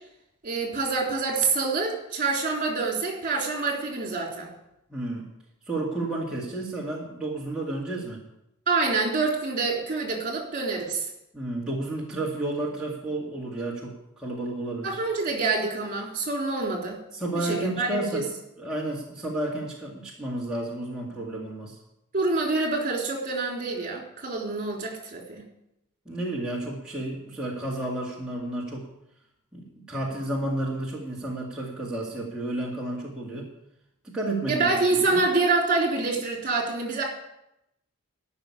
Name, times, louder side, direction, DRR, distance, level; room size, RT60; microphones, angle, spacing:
voice 1, 0.4-4.5 8.7-11.1 14.8-17.0 17.3-18.2 22.1-25.4 34.5-37.0, right 3 dB, 35° right, 0 dB, 3.6 m, -26 dB
voice 2, 4.9-5.3 5.7-8.2 11.3-15.0 17.1-18.3 18.6-21.8 26.1-28.9 29.5-33.5 34.0-35.2, right 1 dB, 5° right, -6 dB, 2.0 m, -31 dB
13.0 x 6.2 x 9.7 m, 0.84 s
head